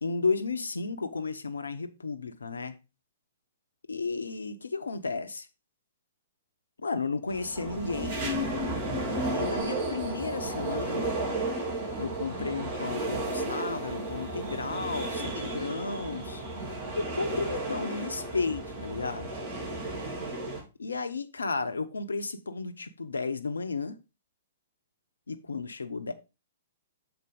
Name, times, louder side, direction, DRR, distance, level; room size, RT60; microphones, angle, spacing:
voice 1, 0.0-2.8 3.9-5.5 6.8-8.2 9.2-11.1 12.0-16.4 17.0-19.3 20.8-24.0 25.3-26.1, left 4 dB, 75° left, 0.8 m, -33 dB
sound 1, 7.3-20.6, right 1 dB, 50° right, 3.7 m, -33 dB
7.1 x 4.4 x 4.9 m
figure-of-eight pair, 115°, 0 cm